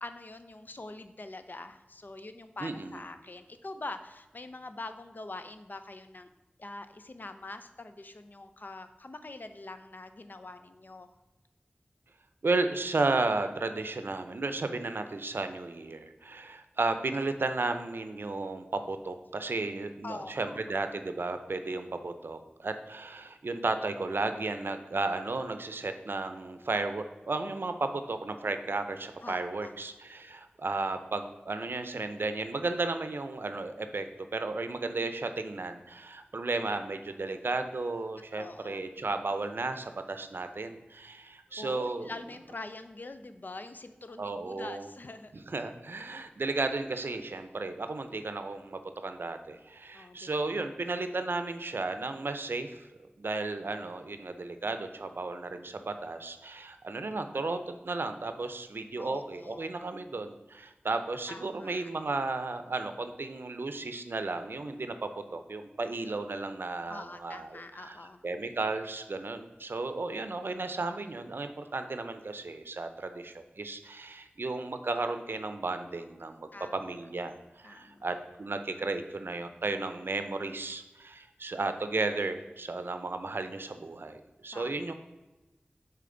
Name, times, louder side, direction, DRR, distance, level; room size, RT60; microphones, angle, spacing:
voice 1, 0.0-6.3 6.6-11.1 20.0-20.6 29.2-29.7 38.4-38.8 41.5-45.3 49.9-50.5 59.0-59.7 61.3-61.9 66.9-68.2 76.5-76.8 77.6-78.0 84.5-84.8, left 2 dB, 60° left, 9 dB, 0.5 m, -44 dB
voice 2, 2.6-3.0 12.4-34.1 34.3-42.1 44.2-44.9 45.5-52.8 53.2-57.6 57.8-68.0 68.2-84.9, right 3 dB, 85° right, 8 dB, 0.5 m, -34 dB
6.7 x 4.4 x 3.8 m, 1.1 s
wide cardioid pair, 60°, 4 cm